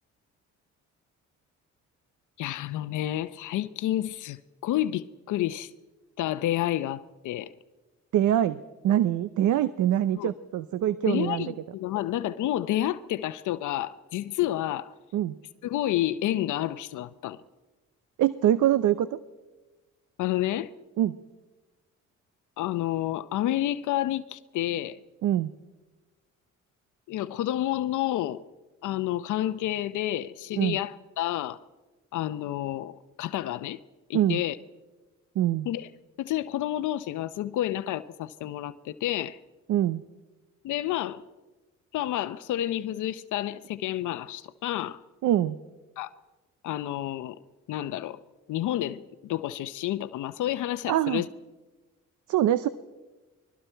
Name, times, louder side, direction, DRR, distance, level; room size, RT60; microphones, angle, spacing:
voice 1, 2.4-5.7 6.2-7.5 10.1-10.3 11.1-14.9 15.6-17.4 20.2-20.7 22.6-25.0 27.1-28.4 28.8-31.6 32.1-33.8 34.1-34.6 35.7-35.9 36.2-39.4 40.6-41.2 41.9-45.0 46.0-46.1 46.6-47.4 47.7-48.2 48.5-51.3, left 13 dB, 80° left, 0.7 m, -30 dB
voice 2, 8.1-11.5 15.1-15.4 18.2-19.1 21.0-21.2 25.2-25.5 30.6-30.8 34.1-34.4 35.4-35.7 39.7-40.0 45.2-45.6 50.9-51.2 52.3-52.7, right 11 dB, 75° right, 0.7 m, -24 dB
29.5 x 21.5 x 4.5 m
cardioid pair, 90°, 30 cm